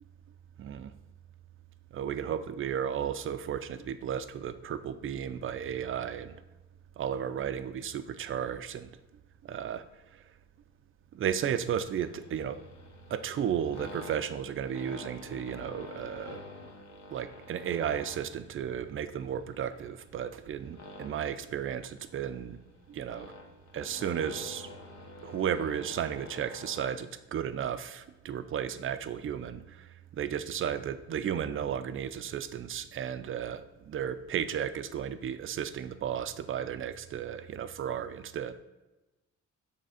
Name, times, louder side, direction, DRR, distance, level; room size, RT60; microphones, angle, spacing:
voice 1, 0.6-0.9 1.9-6.4 7.0-9.0 9.4-9.8 10.1-10.2 11.1-12.6 13.1-16.4 17.1-22.6 22.9-23.3 23.7-24.7 25.2-38.5, right 8 dB, 45° right, 12 dB, 0.5 m, -34 dB
sound 1, 11.2-26.9, left 2 dB, 60° left, 1.1 m, -48 dB
6.7 x 3.4 x 4.9 m, 1.1 s
cardioid pair, 90°, 30 cm